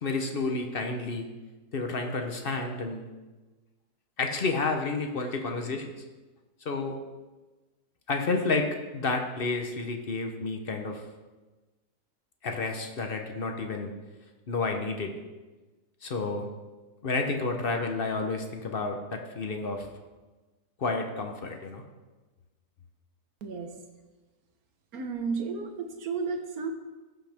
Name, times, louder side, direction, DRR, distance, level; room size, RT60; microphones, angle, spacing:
voice 1, 0.0-1.3 1.7-3.0 4.2-5.9 6.6-7.0 8.1-8.7 8.9-11.0 12.4-13.9 14.5-15.1 16.0-16.5 17.0-19.9 20.8-21.8, left 3 dB, 45° left, 4 dB, 0.8 m, -30 dB
voice 2, 23.4-23.7 24.9-26.7, right 4 dB, 60° right, 5 dB, 1.4 m, -32 dB
14.5 x 5.7 x 3.5 m, 1.2 s
omnidirectional pair, 1.8 m